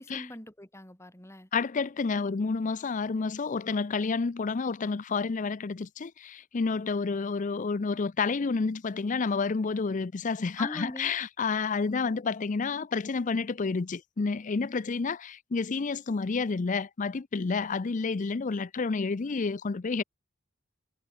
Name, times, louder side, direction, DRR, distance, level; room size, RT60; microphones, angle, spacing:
voice 1, 0.0-1.5 10.6-11.1, left 1 dB, 10° left, 2.4 m, -41 dB
voice 2, 1.5-20.0, left 4 dB, 35° left, 0.5 m, -30 dB
head